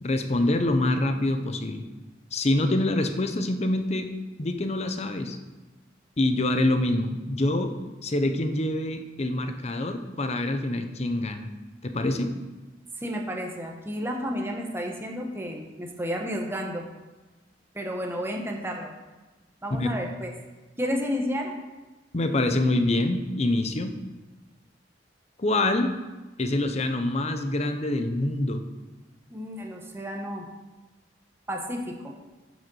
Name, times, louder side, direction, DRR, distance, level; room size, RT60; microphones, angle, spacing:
voice 1, 0.0-1.8 2.3-5.4 6.2-7.7 8.0-11.5 11.8-12.3 19.7-19.9 22.1-24.0 25.4-25.9 26.4-28.7, left 1 dB, 35° left, 8 dB, 0.7 m, -25 dB
voice 2, 13.0-16.8 17.7-18.9 19.6-20.3 20.8-21.5 29.3-30.4 31.5-32.1, equal, 15° right, 1 dB, 1.1 m, -31 dB
9.3 x 5.1 x 6.3 m, 1.2 s
head